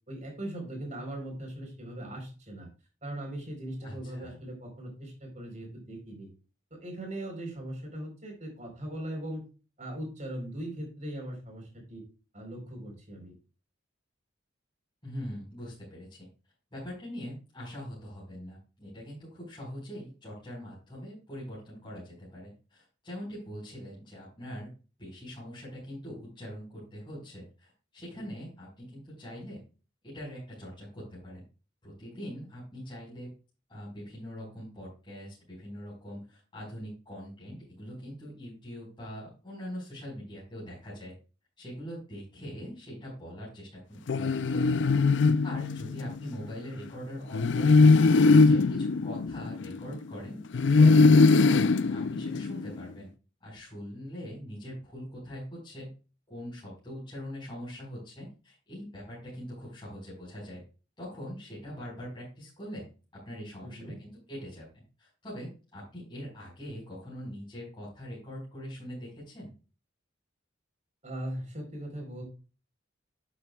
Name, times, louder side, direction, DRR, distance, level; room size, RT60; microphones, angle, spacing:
voice 1, 0.1-2.7 3.0-6.3 6.7-9.4 9.8-12.0 12.3-13.3 63.6-63.9 71.0-72.2, right 1 dB, 35° right, 1 dB, 4.0 m, -39 dB
voice 2, 3.8-4.4 15.0-16.3 16.7-24.7 25.0-29.6 30.0-31.4 31.8-33.3 33.7-41.1 41.6-45.0 45.4-47.8 48.2-50.4 50.7-53.1 53.4-55.9 56.3-60.6 61.0-62.9 63.1-69.5, equal, 25° left, -8 dB, 4.7 m, -42 dB
sound 1, 44.1-46.2 47.3-50.0 50.5-52.8, left 3 dB, 60° left, 0.4 m, -21 dB
11.0 x 7.8 x 2.3 m, 0.34 s
head